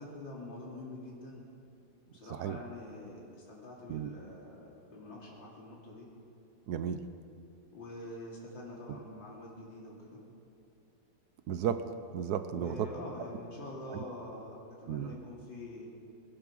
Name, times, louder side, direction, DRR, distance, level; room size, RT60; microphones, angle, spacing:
voice 1, 0.0-1.5 2.1-6.1 7.7-10.2 12.5-15.9, left 1 dB, 90° left, -4 dB, 3.4 m, -45 dB
voice 2, 2.3-2.6 3.9-4.1 6.7-7.0 8.9-9.0 11.5-11.9 12.1-12.9 13.9-14.0 14.9-15.1, right 9 dB, 70° right, 10 dB, 1.1 m, -34 dB
20.0 x 10.5 x 6.2 m, 2.5 s
omnidirectional pair, 2.0 m